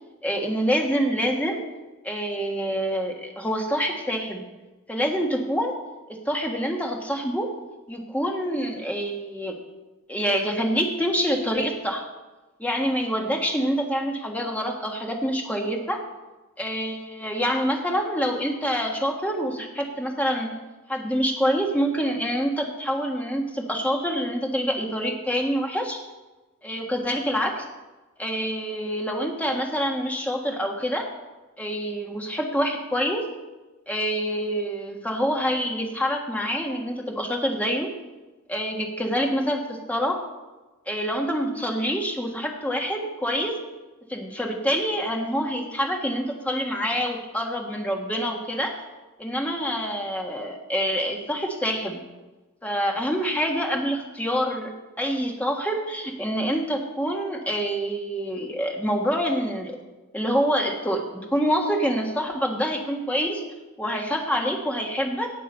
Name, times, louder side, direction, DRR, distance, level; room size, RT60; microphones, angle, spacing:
voice 1, 0.2-1.6 2.0-4.4 4.9-5.7 6.1-7.5 7.9-9.6 10.1-12.0 12.6-16.0 16.6-20.5 20.9-26.0 26.6-27.6 28.2-31.1 31.6-33.2 33.9-37.9 38.5-40.2 40.9-43.6 44.1-48.7 49.2-52.0 52.6-54.7 55.0-59.8 60.1-63.4 63.8-65.3, equal, 5° left, 1 dB, 1.5 m, -26 dB
18.0 x 6.2 x 5.6 m, 1.1 s
head